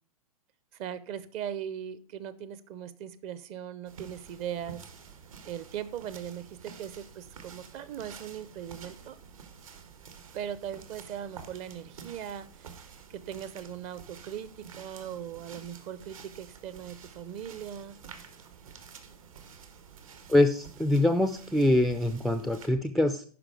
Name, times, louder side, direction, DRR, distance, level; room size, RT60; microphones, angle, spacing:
voice 1, 0.7-4.8 5.4-9.2 10.3-12.8 13.1-18.0, right 9 dB, 30° right, 15 dB, 0.7 m, -39 dB
sound 1, 3.9-22.7, right 6 dB, 65° right, 1.5 m, -49 dB
voice 2, 20.3-23.2, left 1 dB, ahead, 8 dB, 0.4 m, -24 dB
11.0 x 4.9 x 4.8 m, 0.41 s
figure-of-eight pair, 110°, 19 cm